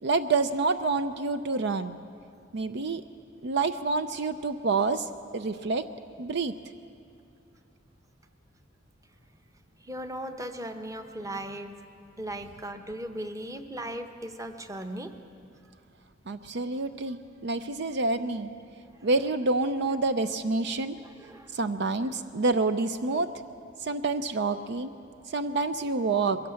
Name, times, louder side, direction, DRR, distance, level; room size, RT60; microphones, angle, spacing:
voice 1, 0.0-2.0 2.5-3.0 3.4-5.8 6.2-6.6 16.3-18.5 19.0-21.0 21.5-23.3 23.8-24.9 25.3-26.4, right 3 dB, 60° right, 11 dB, 0.5 m, -28 dB
voice 2, 9.8-11.7 12.2-15.1 18.9-19.1 21.0-21.6, right 1 dB, 15° right, 7 dB, 0.9 m, -38 dB
22.0 x 16.5 x 7.6 m, 2.5 s
head